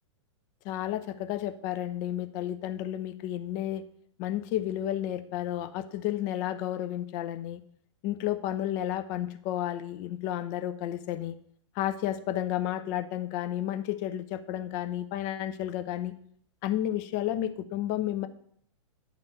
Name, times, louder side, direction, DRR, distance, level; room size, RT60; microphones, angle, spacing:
voice 1, 0.6-3.8 4.2-7.6 8.0-11.3 11.8-16.1 16.6-18.3, left 12 dB, 40° left, 10 dB, 0.7 m, -32 dB
9.7 x 4.1 x 6.7 m, 0.64 s
figure-of-eight pair, 105°, 16 cm